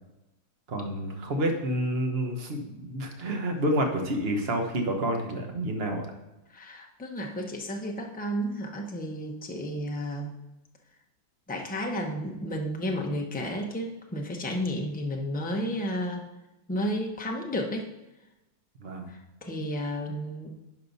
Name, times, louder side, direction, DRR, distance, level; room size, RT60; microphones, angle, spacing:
voice 1, 0.7-6.0 18.8-19.1 19.6-19.7, right 1 dB, 40° right, 3 dB, 1.2 m, -29 dB
voice 2, 6.5-10.3 11.5-16.3 16.7-17.9 19.1-20.5, equal, 10° left, 1 dB, 0.4 m, -32 dB
11.0 x 5.1 x 4.1 m, 0.98 s
omnidirectional pair, 1.9 m